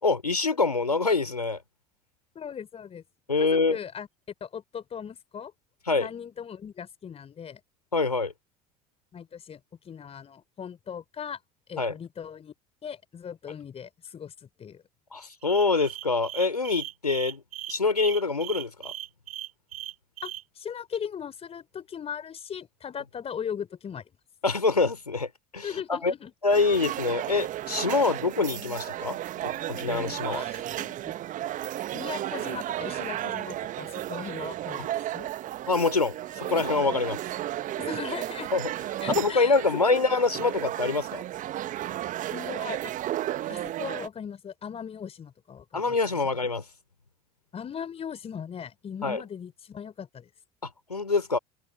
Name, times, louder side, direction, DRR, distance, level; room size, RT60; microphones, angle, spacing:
voice 1, 0.0-1.6 3.3-3.8 5.9-6.1 7.9-8.3 11.8-11.9 15.1-17.4 17.7-18.9 24.4-26.1 26.4-29.2 29.4-30.5 35.7-37.2 38.5-38.6 39.1-41.2 45.7-46.6 49.0-49.2 50.9-51.4, left 3 dB, 90° left, 4.4 m, -25 dB
voice 2, 2.3-3.0 3.4-4.1 4.4-5.5 6.0-7.6 9.1-11.4 11.7-12.5 12.8-14.8 20.2-24.0 25.6-26.3 30.3-31.1 31.9-35.3 37.8-38.5 39.0-40.1 42.3-42.9 43.4-46.0 47.5-50.3, left 7 dB, 30° left, 4.3 m, -38 dB
sound 1, 15.4-20.4, right 14 dB, 70° right, 7.0 m, -38 dB
sound 2, 26.5-44.1, right 13 dB, 40° right, 1.4 m, -34 dB
figure-of-eight pair, 70°, 20 cm